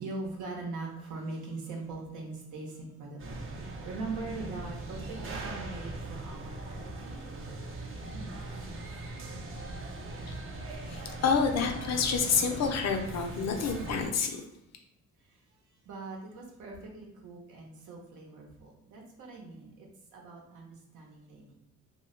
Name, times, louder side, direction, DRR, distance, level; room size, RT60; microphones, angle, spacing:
voice 1, 0.0-7.2 8.1-8.3 15.8-21.5, right 3 dB, 80° right, 0 dB, 0.9 m, -41 dB
sound 1, 3.2-14.1, right 2 dB, 45° right, 0.6 m, -40 dB
voice 2, 10.9-14.4, left 6 dB, 60° left, 4 dB, 0.6 m, -28 dB
2.7 x 2.3 x 3.1 m, 0.88 s
cardioid pair, 90°, 30 cm